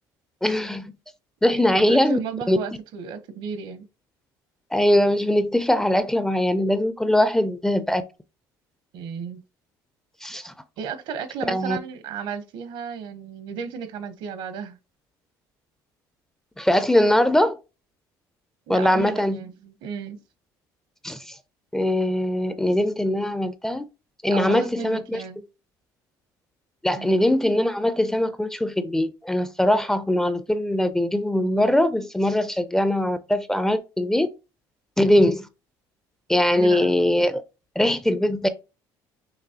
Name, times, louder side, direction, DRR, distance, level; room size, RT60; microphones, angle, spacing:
voice 1, 0.4-0.9 1.4-2.2 2.5-2.6 4.7-8.0 10.2-10.5 11.5-11.8 16.6-17.6 18.7-19.4 21.0-21.3 21.7-23.8 24.2-25.2 26.8-34.3 35.0-35.5 36.3-37.4 37.8-38.5, left 1 dB, 5° left, 0.4 m, -21 dB
voice 2, 1.5-3.9 8.9-9.4 10.8-14.8 18.7-20.2 24.3-25.4 26.9-27.2 36.5-36.9, right 6 dB, 70° right, 0.8 m, -34 dB
5.9 x 3.0 x 2.8 m
cardioid pair, 120°, 8 cm